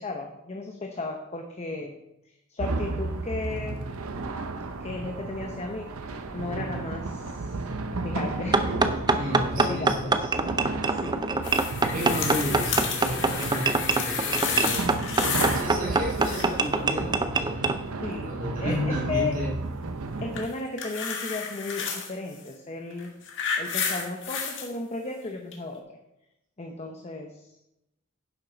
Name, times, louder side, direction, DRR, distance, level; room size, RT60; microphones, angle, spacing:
voice 1, 0.0-2.0 2.5-3.8 4.8-10.1 10.9-11.3 18.0-19.4 20.2-23.1 23.6-26.0 26.6-27.5, left 3 dB, 30° left, 3 dB, 0.8 m, -35 dB
sound 1, 2.6-20.5, right 3 dB, 85° right, 0.7 m, -33 dB
sound 2, 8.5-17.8, right 3 dB, 20° right, 0.5 m, -25 dB
voice 2, 9.2-10.3 11.9-15.2 15.5-19.6, equal, 40° right, -2 dB, 2.5 m, -33 dB
sound 3, 11.4-15.7 15.9-16.7 20.3-22.1 22.9-24.7 25.5-25.6, left 6 dB, 60° left, 1.7 m, -31 dB
10.5 x 7.5 x 4.0 m, 0.88 s
head